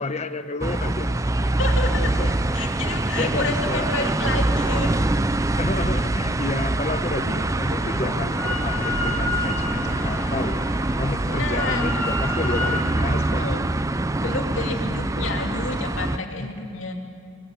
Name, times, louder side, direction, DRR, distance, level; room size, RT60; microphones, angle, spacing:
voice 1, 0.0-1.5 2.2-2.3 3.2-4.4 5.6-10.7 11.0-13.9 14.8-14.9 16.4-16.5, left 2 dB, 35° left, 10 dB, 1.0 m, -31 dB
sound 1, 0.6-16.2, right 2 dB, 15° right, 0.5 m, -24 dB
voice 2, 1.6-5.0 11.3-11.9 13.3-13.6 14.2-16.9, left 3 dB, 70° left, 2 dB, 2.8 m, -30 dB
Drill, 7.6-12.8, left 2 dB, 10° left, 2.9 m, -31 dB
26.5 x 21.5 x 8.3 m, 2.6 s
head